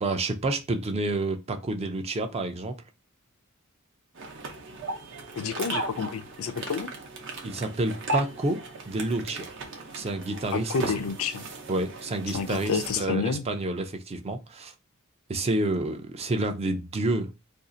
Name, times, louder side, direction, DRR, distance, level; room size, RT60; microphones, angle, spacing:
voice 1, 0.0-2.8 7.4-9.4 9.9-10.9 11.7-14.7 15.3-17.3, right 2 dB, 30° right, 0.4 m, -29 dB
sound 1, 4.2-13.1, right 2 dB, 60° right, 0.7 m, -37 dB
voice 2, 5.3-6.9 10.5-11.5 12.3-13.4, left 5 dB, 75° left, 0.5 m, -29 dB
2.6 x 2.4 x 3.8 m
head